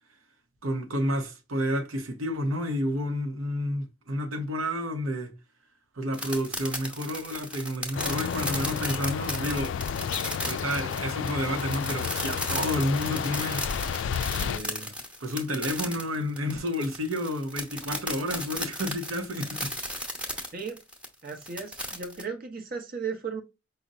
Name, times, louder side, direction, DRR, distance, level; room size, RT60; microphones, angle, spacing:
voice 1, 0.6-5.3 6.0-9.8 10.4-13.7 14.3-14.9 15.2-19.7, equal, 85° right, 0.8 m, -30 dB
sound 1, 6.1-22.2, left 1 dB, 5° right, 0.9 m, -35 dB
sound 2, 7.9-14.6, left 7 dB, 60° left, 0.3 m, -31 dB
voice 2, 21.2-23.4, right 5 dB, 45° right, 0.8 m, -35 dB
5.3 x 2.1 x 3.7 m
head